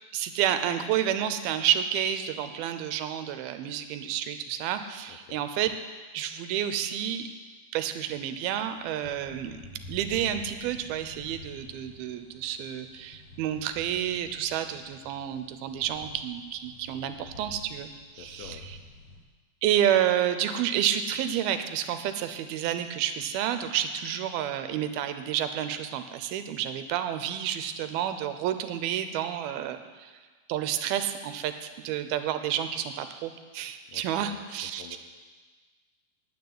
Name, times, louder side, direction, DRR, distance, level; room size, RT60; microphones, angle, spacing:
voice 1, 0.1-5.7 6.1-7.3 7.7-9.6 9.9-17.9 18.2-18.6 19.6-30.1 30.5-35.0, right 10 dB, 85° right, 9 dB, 2.6 m, -30 dB
voice 2, 5.1-5.5 18.2-18.7 33.9-35.0, left 8 dB, 75° left, 5 dB, 2.1 m, -48 dB
sound 1, 8.0-19.2, left 2 dB, 55° left, 3.0 m, -49 dB
9.4 x 9.3 x 9.6 m, 1.4 s
omnidirectional pair, 4.4 m